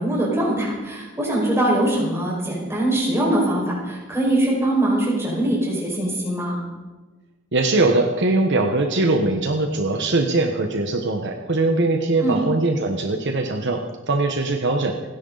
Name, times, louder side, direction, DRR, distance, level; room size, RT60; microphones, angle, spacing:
voice 1, 0.0-6.6 12.2-12.4, right 1 dB, 15° right, -3 dB, 5.3 m, -22 dB
voice 2, 7.5-15.1, right 2 dB, 60° right, 4 dB, 1.2 m, -21 dB
29.5 x 10.5 x 4.0 m, 1.2 s
head